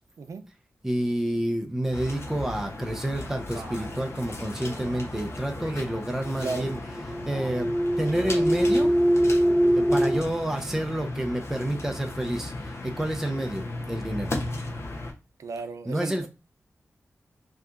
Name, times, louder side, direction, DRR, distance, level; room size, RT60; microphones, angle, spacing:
voice 1, 0.8-6.8 7.1-8.9 9.7-14.4 15.9-16.3, right 1 dB, 10° right, 0.6 m, -29 dB
sound 1, 1.9-15.1, left 2 dB, 55° left, 0.8 m, -36 dB
Male speech man speaking, 3.5-4.0 4.6-5.0 5.6-5.9 6.4-6.8 7.2-7.6 8.0-8.5, right 2 dB, 65° right, 1.1 m, -43 dB
sound 2, 6.3-10.2, equal, 20° left, 1.1 m, -23 dB
voice 2, 15.4-16.3, right 4 dB, 80° right, 0.5 m, -34 dB
5.6 x 2.9 x 2.5 m
wide cardioid pair, 75°, 5 cm